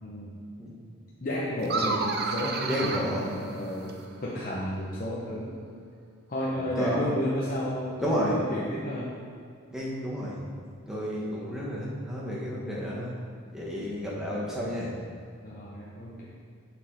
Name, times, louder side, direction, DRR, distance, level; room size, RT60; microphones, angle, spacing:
voice 1, 0.0-0.4 1.2-3.9 4.2-5.6 6.3-9.2 15.4-16.3, left 1 dB, 40° left, -5 dB, 0.8 m, -32 dB
sound 1, 1.6-4.1, right 3 dB, 50° right, 0.7 m, -31 dB
voice 2, 2.7-3.3 6.6-7.1 8.0-8.4 9.7-10.4 10.9-13.1 13.5-14.9, equal, 5° right, -6 dB, 1.4 m, -31 dB
6.8 x 6.1 x 4.8 m, 2.2 s
head